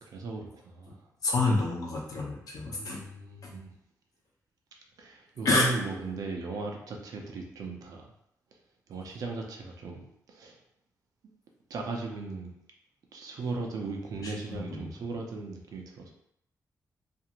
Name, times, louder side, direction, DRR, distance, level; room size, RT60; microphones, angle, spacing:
voice 1, 0.0-1.0 2.8-3.7 5.0-8.1 8.9-10.6 11.7-12.5 13.1-16.1, right 3 dB, 75° right, 0 dB, 0.6 m, -37 dB
voice 2, 1.2-3.0 3.4-3.5 5.4-5.7 14.2-14.9, left 2 dB, 70° left, -2 dB, 0.8 m, -28 dB
2.6 x 2.5 x 2.9 m, 0.77 s
wide cardioid pair, 130°, 6 cm